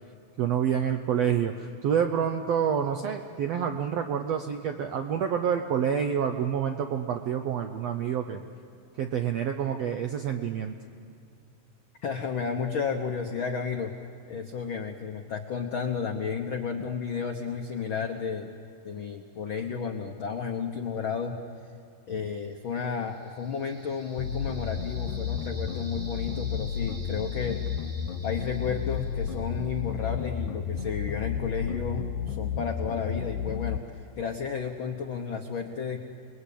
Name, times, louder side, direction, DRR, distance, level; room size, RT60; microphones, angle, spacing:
voice 1, 0.4-8.4 9.0-10.7, right 8 dB, 80° right, 5 dB, 1.4 m, -28 dB
voice 2, 12.0-13.9 14.3-18.5 18.8-21.4 22.1-27.6 28.2-36.0, left 6 dB, 85° left, 4 dB, 1.1 m, -32 dB
sound 1, 22.8-29.8, right 2 dB, 35° right, 5.1 m, -50 dB
sound 2, 24.2-33.8, left 7 dB, 70° left, 2.1 m, -32 dB
29.0 x 21.0 x 8.5 m, 2.3 s
omnidirectional pair, 4.0 m